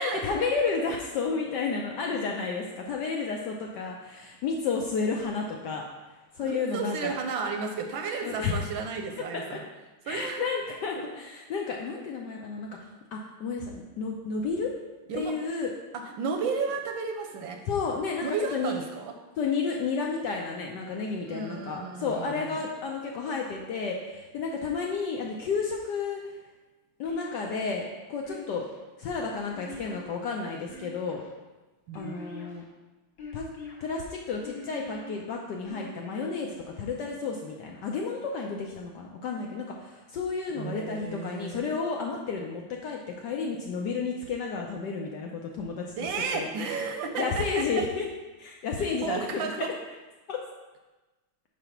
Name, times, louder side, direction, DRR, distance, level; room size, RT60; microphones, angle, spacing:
voice 1, 0.0-5.9 6.3-7.2 8.2-8.6 9.3-9.4 10.0-14.7 15.1-15.7 17.7-18.7 19.4-26.4 27.0-28.7 29.0-31.2 31.9-32.6 33.3-33.5 33.8-45.9 46.3-46.5 47.2-48.0 48.4-49.7 50.3-50.4, left 4 dB, 75° left, 1 dB, 1.0 m, -31 dB
voice 2, 6.4-9.6 10.1-10.4 11.0-11.1 15.1-15.3 16.0-17.6 18.2-19.1 21.3-22.6 31.9-32.2 40.5-41.7 46.0-47.6 49.0-49.7, right 5 dB, 75° right, 4 dB, 1.2 m, -33 dB
sound 1, 27.1-27.7 28.2-28.8 29.5-30.2 30.6-31.3 31.9-32.6 33.2-33.8 34.4-35.1 35.6-36.3, left 2 dB, 45° left, 1.5 m, -43 dB
5.1 x 4.9 x 5.7 m, 1.2 s
omnidirectional pair, 2.4 m